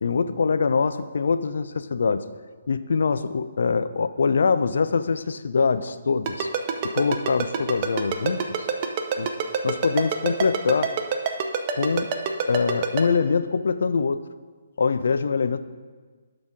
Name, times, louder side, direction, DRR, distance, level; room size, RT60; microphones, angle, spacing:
voice 1, 0.0-2.2 2.7-6.5 6.9-8.7 9.2-9.3 9.6-10.9 11.7-12.1 12.5-14.2 14.8-15.6, left 5 dB, 60° left, 12 dB, 0.4 m, -23 dB
Ringtone, 6.3-13.0, right 7 dB, 35° right, 0.6 m, -25 dB
12.0 x 4.0 x 4.9 m, 1.4 s
figure-of-eight pair, 135°, 0 cm